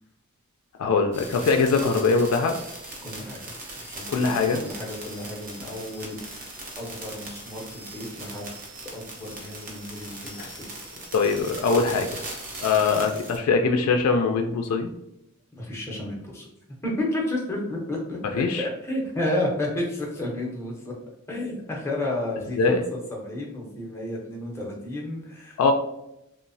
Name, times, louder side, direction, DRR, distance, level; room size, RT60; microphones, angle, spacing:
voice 1, 0.8-2.5 4.1-4.6 10.4-10.5 11.1-12.2 12.6-14.9 18.3-18.7 22.6-22.8 25.6-25.7, left 4 dB, 90° left, 4 dB, 0.3 m, -22 dB
sound 1, 1.1-13.4, right 2 dB, 40° right, 0.7 m, -39 dB
voice 2, 3.0-6.5 6.8-8.5 8.9-10.6 15.6-16.5 16.8-20.9 21.3-25.6, left 1 dB, 10° left, -2 dB, 0.6 m, -32 dB
3.0 x 2.0 x 2.6 m, 0.83 s
head